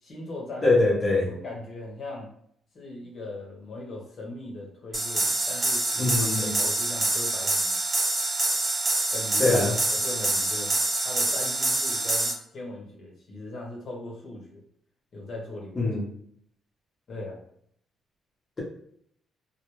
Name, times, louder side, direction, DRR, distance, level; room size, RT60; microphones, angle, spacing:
voice 1, 0.0-0.7 1.3-2.3 2.7-7.8 9.1-9.6 9.9-10.8 11.0-14.6 15.1-15.9 17.1-17.4, left 2 dB, 55° left, -2 dB, 0.9 m, -39 dB
voice 2, 0.6-1.3 6.0-6.5 9.4-9.7 15.8-16.0, left 2 dB, 30° left, -3 dB, 0.9 m, -22 dB
sound 1, 4.9-12.3, right 2 dB, 25° right, 0.8 m, -26 dB
2.2 x 2.2 x 3.1 m, 0.67 s
cardioid pair, 90°, 0 cm